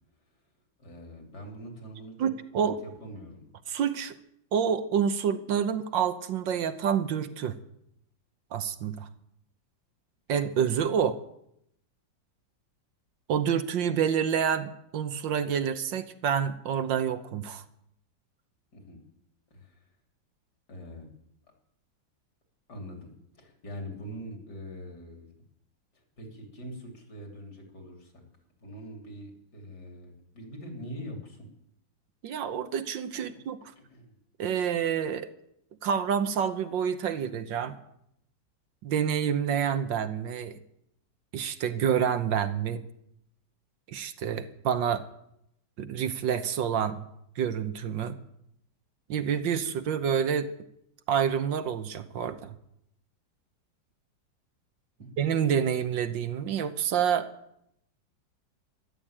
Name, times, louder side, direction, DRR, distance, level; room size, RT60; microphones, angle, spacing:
voice 1, 0.8-2.2 2.5-3.5 18.7-19.0 19.5-19.9 20.7-21.1 22.7-25.3 25.9-28.2 28.6-31.5 33.1-33.4 33.8-34.1 55.0-55.1, equal, 55° left, 3 dB, 3.8 m, -43 dB
voice 2, 2.2-2.8 3.7-4.1 4.5-7.5 8.5-9.1 10.3-11.2 13.3-17.6 32.2-33.6 34.4-35.3 35.8-37.8 38.8-40.6 41.3-42.8 43.9-45.0 45.8-47.1 47.4-48.2 49.1-50.5 51.1-52.5 55.2-57.3, right 8 dB, 70° right, 10 dB, 1.6 m, -28 dB
13.5 x 11.5 x 8.8 m, 0.76 s
omnidirectional pair, 2.1 m